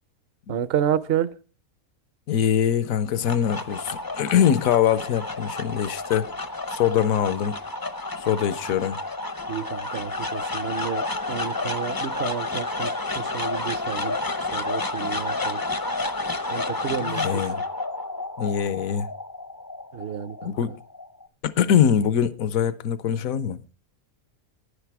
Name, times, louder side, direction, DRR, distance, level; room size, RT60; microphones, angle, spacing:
voice 1, 0.5-1.3 9.5-12.9 13.2-14.2 14.5-15.6 16.5-17.4 19.9-20.5, right 9 dB, 55° right, 0.8 m, -30 dB
voice 2, 2.3-6.3 6.7-7.6 8.2-9.0 17.0-17.6 18.4-19.1 20.4-20.8 21.4-23.6, left 9 dB, 75° left, 1.2 m, -23 dB
sound 1, 2.9-21.3, left 2 dB, 25° left, 0.5 m, -30 dB
11.0 x 10.0 x 4.7 m
omnidirectional pair, 1.5 m